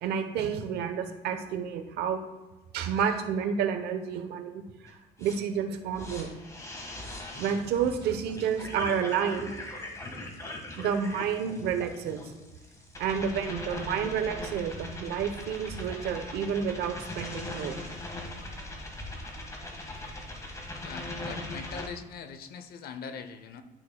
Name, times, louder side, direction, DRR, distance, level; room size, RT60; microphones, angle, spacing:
voice 1, 0.0-2.2 2.7-6.4 7.4-9.5 10.8-12.2 13.0-17.8, right 7 dB, 80° right, 7 dB, 0.9 m, -30 dB
sound 1, 4.9-5.0 5.2-21.9, left 1 dB, 20° left, 1.7 m, -40 dB
voice 2, 20.8-23.6, left 6 dB, 65° left, 10 dB, 0.7 m, -42 dB
12.0 x 6.1 x 2.3 m, 1.1 s
cardioid pair, 110°, 17 cm